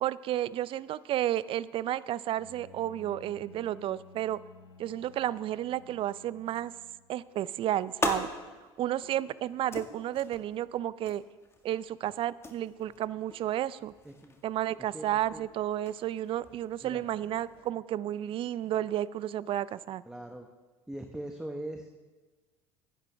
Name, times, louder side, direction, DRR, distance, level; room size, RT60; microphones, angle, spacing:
voice 1, 0.0-4.4 4.8-6.7 7.1-8.3 8.8-11.2 11.6-13.9 14.4-20.0, right 12 dB, 40° right, 19 dB, 0.5 m, -32 dB
Bowed string instrument, 2.3-7.3, left 3 dB, 85° left, 1.1 m, -55 dB
sound 1, 7.3-17.7, left 3 dB, 20° left, 1.9 m, -42 dB
voice 2, 14.0-14.4 14.8-15.4 16.8-17.1 20.0-20.5 20.9-22.0, right 1 dB, 5° right, 4 dB, 1.1 m, -41 dB
16.0 x 10.5 x 3.4 m, 1.3 s
hypercardioid pair, 70°, 13 cm